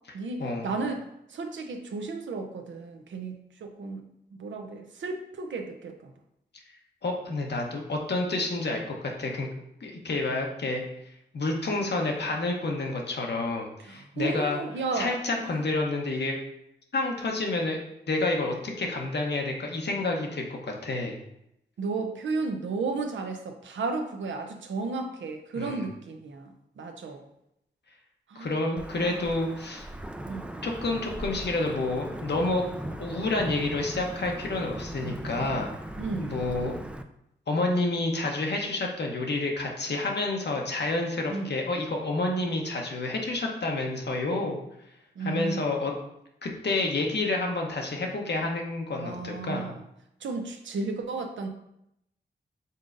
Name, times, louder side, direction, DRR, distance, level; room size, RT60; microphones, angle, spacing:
voice 1, 0.1-4.1 4.3-6.1 13.8-15.5 21.8-27.3 28.3-28.6 29.0-29.2 30.3-30.6 36.0-36.4 41.3-41.6 45.1-45.8 49.0-49.8 50.2-51.5, right 3 dB, 80° right, 4 dB, 0.6 m, -34 dB
voice 2, 7.0-9.5 9.8-10.8 11.3-14.6 14.9-16.4 16.9-17.8 18.1-21.2 25.6-25.8 28.3-29.9 30.6-32.6 33.0-35.7 36.2-36.7 37.5-44.6 45.2-45.9 46.4-49.7, left 2 dB, 65° left, 1 dB, 0.9 m, -29 dB
Wind / Thunder / Rain, 28.8-37.0, right 1 dB, 5° right, 0.4 m, -38 dB
5.3 x 3.8 x 2.6 m, 0.80 s
cardioid pair, 45°, 19 cm